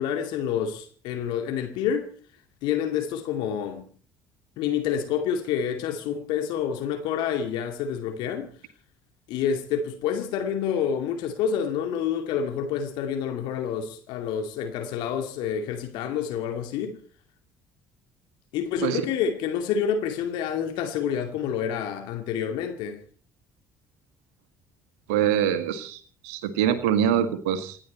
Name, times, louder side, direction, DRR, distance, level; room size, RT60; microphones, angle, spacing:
voice 1, 0.0-2.1 2.6-3.9 4.6-8.5 9.3-17.0 18.5-23.0, left 8 dB, 60° left, 2.4 m, -28 dB
voice 2, 25.1-27.8, right 9 dB, 70° right, 1.9 m, -24 dB
28.0 x 10.5 x 4.4 m
figure-of-eight pair, 50°, 9 cm